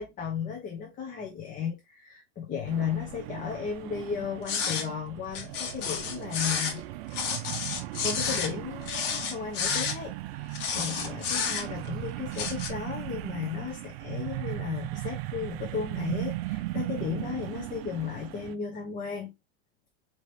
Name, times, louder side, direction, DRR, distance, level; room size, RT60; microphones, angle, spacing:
voice 1, 0.0-6.8 8.0-19.3, left 7 dB, 25° left, 0.8 m, -35 dB
sound 1, 2.7-18.6, right 17 dB, 70° right, 0.5 m, -37 dB
sound 2, 4.5-4.9 5.3-6.8 7.1-8.5 8.8-9.9 10.5-11.9 12.3-12.7, left 6 dB, 50° left, 1.4 m, -30 dB
4.9 x 2.9 x 2.7 m
supercardioid pair, 145°, 32 cm